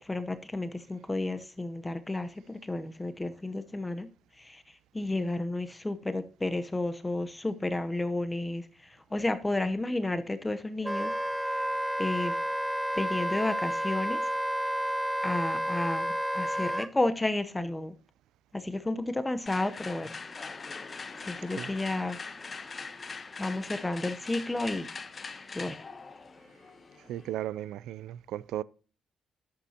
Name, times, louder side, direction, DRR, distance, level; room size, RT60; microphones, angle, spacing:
voice 1, 0.0-4.1 4.4-4.6 4.9-11.1 11.5-11.7 12.0-12.4 12.9-14.2 15.2-17.9 18.5-20.2 21.2-22.2 23.4-24.9 25.5-25.8, left 2 dB, 15° left, 0.8 m, -32 dB
Wind instrument woodwind instrument, 10.8-16.9, equal, 5° right, 0.4 m, -30 dB
sound 1, 19.5-27.4, left 4 dB, 35° left, 1.0 m, -42 dB
voice 2, 27.1-28.6, right 12 dB, 85° right, 0.4 m, -36 dB
11.5 x 8.4 x 2.8 m
cardioid pair, 90°, 0 cm